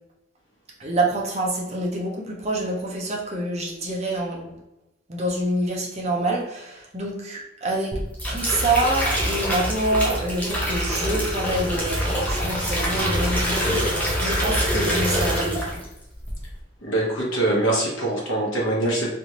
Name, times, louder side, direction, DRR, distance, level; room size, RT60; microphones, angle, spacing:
voice 1, 0.8-4.6 5.1-8.0 8.3-15.8, right 2 dB, 35° right, -2 dB, 0.7 m, -26 dB
sound 1, 7.9-15.9 16.2-16.6, equal, 10° left, 0.7 m, -25 dB
voice 2, 16.8-19.1, right 1 dB, 75° left, -3 dB, 1.1 m, -23 dB
3.4 x 2.5 x 2.9 m, 0.91 s
head